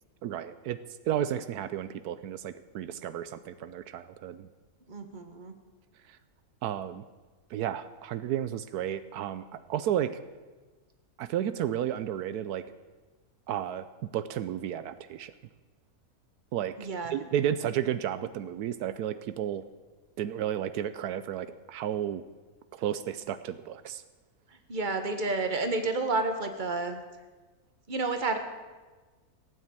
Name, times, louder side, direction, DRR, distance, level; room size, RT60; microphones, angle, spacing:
voice 1, 0.2-0.8 1.1-4.5 6.6-7.1 7.5-10.2 11.2-12.6 13.5-13.8 14.1-15.3 16.5-16.7 17.1-19.6 20.2-22.2 22.7-24.0, right 10 dB, 80° right, 13 dB, 1.2 m, -32 dB
voice 2, 4.9-5.5 16.8-17.1 24.5-27.0 27.9-28.4, right 3 dB, 35° right, 6 dB, 1.5 m, -30 dB
16.0 x 9.3 x 9.0 m, 1.3 s
omnidirectional pair, 1.6 m